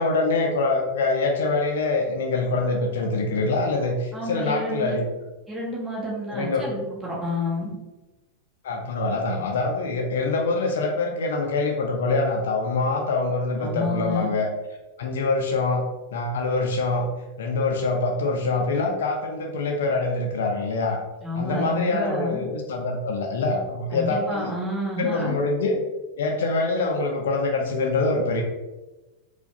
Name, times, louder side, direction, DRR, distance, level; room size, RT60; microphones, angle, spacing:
voice 1, 0.0-5.1 6.3-6.7 8.6-14.5 15.0-15.8 16.1-17.1 17.4-21.0 21.4-24.5 25.0-25.8 26.2-28.4, left 3 dB, 60° left, 2 dB, 0.4 m, -24 dB
voice 2, 4.1-4.9 5.5-7.7 13.6-14.3 21.2-22.4 23.9-25.4, left 1 dB, 10° right, -6 dB, 1.2 m, -29 dB
4.4 x 2.2 x 2.7 m, 1.1 s
figure-of-eight pair, 90°, 0 cm